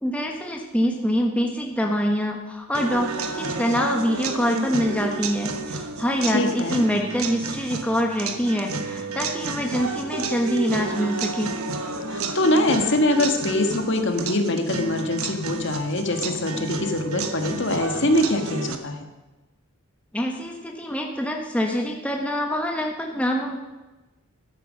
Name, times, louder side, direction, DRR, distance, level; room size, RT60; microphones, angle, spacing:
voice 1, 0.0-11.5 20.1-23.6, equal, 5° left, 1 dB, 1.1 m, -25 dB
sound 1, 2.7-18.8, right 3 dB, 75° right, 1.3 m, -31 dB
voice 2, 6.3-6.8 12.1-19.0, left 1 dB, 55° left, 5 dB, 1.6 m, -23 dB
13.0 x 10.0 x 6.4 m, 1.1 s
head